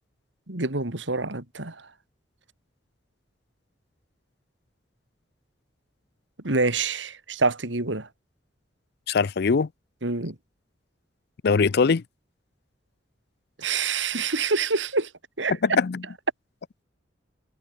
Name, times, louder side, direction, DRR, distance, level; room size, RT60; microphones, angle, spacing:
voice 1, 0.5-1.8 6.4-8.1 10.0-10.4 13.6-15.1 15.4-15.6, right 3 dB, 90° right, 2.8 m, -26 dB
voice 2, 9.1-9.7 11.4-12.0 15.6-16.0, left 5 dB, 60° left, 0.5 m, -21 dB
head